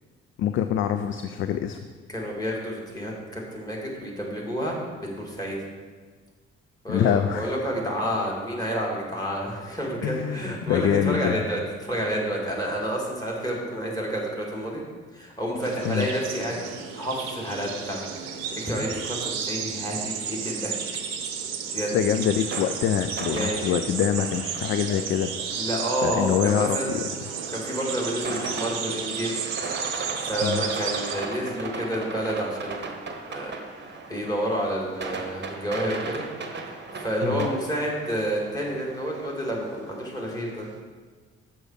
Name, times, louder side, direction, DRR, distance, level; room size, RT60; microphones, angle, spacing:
voice 1, 0.4-1.8 6.9-7.5 10.0-11.4 15.8-16.1 21.9-25.3 26.0-27.0 30.4-30.6 37.2-37.5, left 9 dB, 40° left, 9 dB, 0.4 m, -25 dB
voice 2, 2.1-4.8 5.0-5.6 6.8-14.8 15.1-18.0 18.6-20.8 21.7-21.9 23.3-23.8 25.6-26.9 27.5-29.4 30.2-32.9 33.3-36.2 37.0-40.7, equal, 10° left, -3 dB, 2.1 m, -29 dB
sound 1, 15.6-31.1, right 6 dB, 70° right, 0.7 m, -33 dB
sound 2, 22.2-40.8, right 3 dB, 30° right, 1.0 m, -37 dB
6.2 x 5.7 x 4.8 m, 1.5 s
figure-of-eight pair, 40°, 33 cm